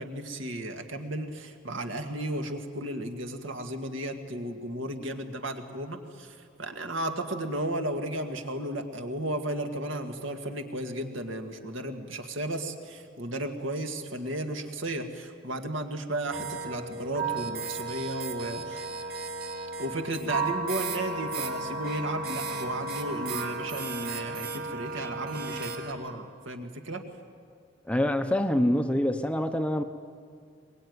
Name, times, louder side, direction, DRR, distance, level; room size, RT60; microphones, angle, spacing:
voice 1, 0.0-18.9 19.8-27.0, right 1 dB, 70° right, 5 dB, 1.9 m, -34 dB
sound 1, 16.3-25.9, right 3 dB, 50° right, 2.2 m, -34 dB
voice 2, 27.9-29.8, left 1 dB, 5° left, 7 dB, 0.7 m, -25 dB
23.0 x 21.0 x 9.6 m, 2.2 s
head